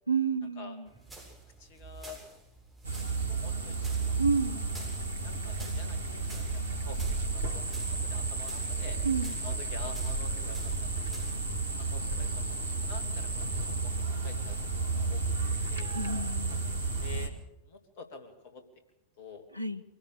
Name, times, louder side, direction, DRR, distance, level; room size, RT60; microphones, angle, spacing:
voice 1, 0.1-0.9 4.2-4.8 9.0-9.4 15.9-16.9 19.5-19.8, right 4 dB, 90° right, 12 dB, 0.9 m, -30 dB
sound 1, 0.9-11.5, right 2 dB, 5° right, 8.0 m, -51 dB
voice 2, 1.6-2.2 3.3-4.2 5.2-7.4 7.7-9.0 9.4-11.1 11.7-15.4 15.7-15.9 17.0-17.3 17.6-18.6 19.2-19.5, left 4 dB, 50° left, 7 dB, 2.8 m, -48 dB
sound 2, 2.8-17.3, right 3 dB, 70° right, 2.2 m, -32 dB
23.5 x 17.0 x 6.7 m, 0.87 s
figure-of-eight pair, 90°, 0 cm